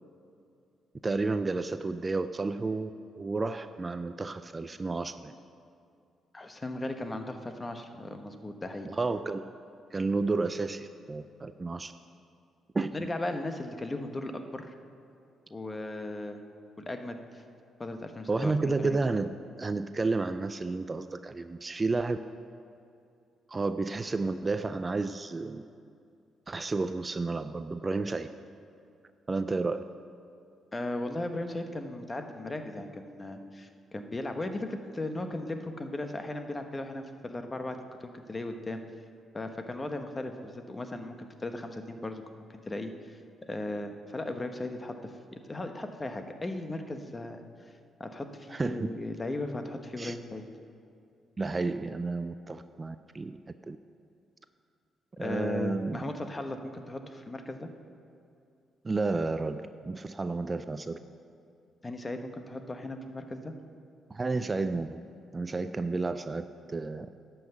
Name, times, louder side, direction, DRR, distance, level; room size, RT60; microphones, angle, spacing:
voice 1, 1.0-5.3 8.9-9.5 9.9-11.9 12.7-13.0 18.3-19.3 19.6-22.2 23.5-25.6 26.5-28.3 29.3-29.8 48.5-48.9 50.0-50.2 51.4-53.4 53.7-53.8 55.2-56.0 58.8-61.0 64.1-65.0 65.3-67.1, right 3 dB, 30° right, 11 dB, 0.4 m, -31 dB
voice 2, 6.3-8.9 12.9-14.7 15.5-16.4 16.9-17.4 17.8-19.0 30.7-38.8 39.3-42.2 42.5-43.2 43.5-47.7 48.0-50.4 55.2-57.7 61.8-63.5, left 2 dB, 25° left, 6 dB, 1.1 m, -37 dB
11.5 x 5.8 x 7.8 m, 2.5 s
supercardioid pair, 70°, 0 cm